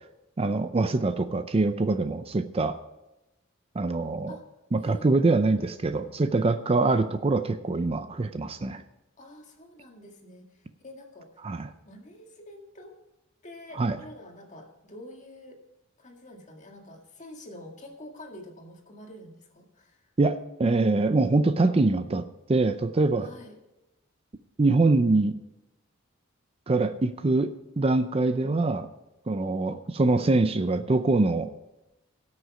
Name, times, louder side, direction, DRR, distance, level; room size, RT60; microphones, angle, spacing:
voice 1, 0.4-2.8 3.8-4.4 4.7-8.8 11.4-11.7 13.7-14.0 20.2-22.2 22.5-23.3 24.6-25.4 26.7-28.9 29.3-31.5, right 3 dB, 30° right, 10 dB, 0.5 m, -24 dB
voice 2, 4.8-5.1 6.6-6.8 9.2-11.3 11.6-12.9 13.4-15.6 16.0-20.1 23.2-23.5, left 1 dB, 35° left, 2 dB, 1.9 m, -47 dB
17.5 x 6.4 x 4.9 m, 0.98 s
head